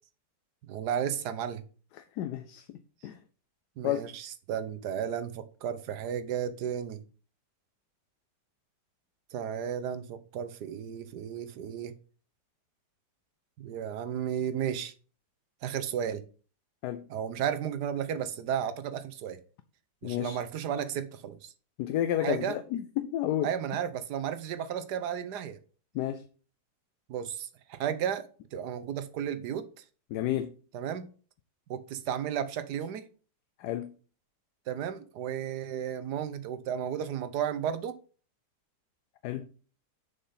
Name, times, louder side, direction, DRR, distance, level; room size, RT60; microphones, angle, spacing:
voice 1, 0.7-1.6 3.8-7.0 9.3-11.9 13.6-14.9 15.6-16.2 17.1-19.4 20.0-21.5 22.2-22.6 23.4-25.6 27.1-29.8 30.7-31.1 31.7-33.0 34.7-38.0, right 9 dB, 70° right, 1.4 m, -33 dB
voice 2, 2.0-2.7 3.0-3.2 3.8-4.0 16.8-17.1 20.0-20.4 21.8-23.5 25.9-26.2 30.1-30.5 33.6-33.9 39.2-39.5, left 12 dB, 75° left, 1.2 m, -31 dB
6.7 x 5.6 x 5.6 m
omnidirectional pair, 1.8 m